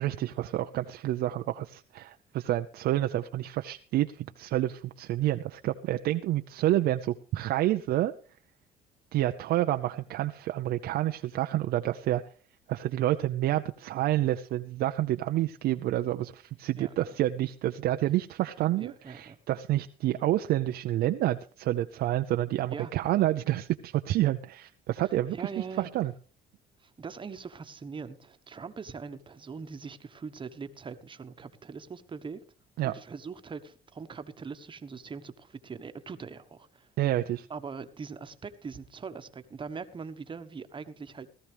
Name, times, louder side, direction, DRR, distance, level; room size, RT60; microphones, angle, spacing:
voice 1, 0.0-8.1 9.1-12.2 12.7-26.1 32.8-32.9 37.0-37.5, right 14 dB, 70° right, 0.6 m, -29 dB
voice 2, 16.8-17.1 18.8-19.4 22.7-22.9 25.3-25.9 26.8-32.4 32.8-36.9 37.5-41.3, right 5 dB, 30° right, 1.2 m, -41 dB
17.5 x 13.5 x 3.4 m
cardioid pair, 110°, 17 cm